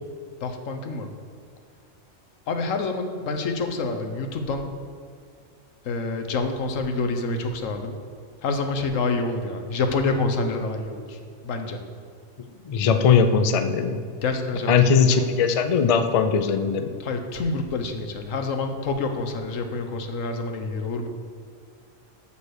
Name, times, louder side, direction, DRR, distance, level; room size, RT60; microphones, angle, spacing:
voice 1, 0.4-1.1 2.5-4.7 5.8-8.0 8.4-11.8 14.2-15.2 17.0-21.1, left 3 dB, 85° left, 6 dB, 1.3 m, -27 dB
voice 2, 12.6-14.0 14.7-17.0, left 6 dB, 50° left, 8 dB, 0.4 m, -20 dB
7.1 x 7.0 x 6.4 m, 2.2 s
omnidirectional pair, 1.3 m